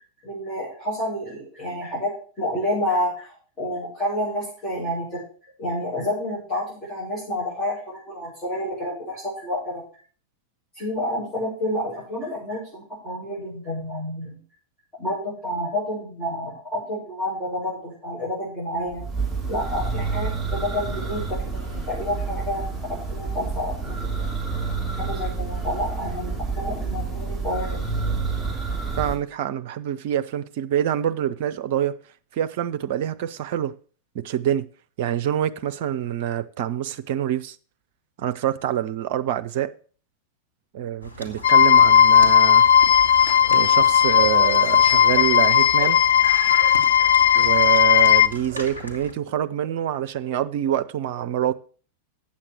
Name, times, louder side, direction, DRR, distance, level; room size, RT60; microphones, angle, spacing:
voice 1, 0.2-2.1 2.4-5.2 5.6-9.8 10.8-14.4 15.0-19.0 19.5-24.3 24.9-27.8, left 1 dB, 20° left, 7.0 m, -29 dB
Church bell, 18.9-29.2, right 4 dB, 5° left, 2.8 m, -29 dB
voice 2, 29.0-32.0 32.3-33.7 34.1-34.7 35.0-37.6 38.2-39.7 40.7-42.6 43.5-46.0 47.3-51.5, right 11 dB, 50° right, 0.6 m, -26 dB
sound 1, 41.0-49.1, equal, 90° left, 1.6 m, -36 dB
sound 2, 41.4-48.3, left 9 dB, 65° left, 0.4 m, -16 dB
8.7 x 7.4 x 6.3 m
figure-of-eight pair, 90°, 0 cm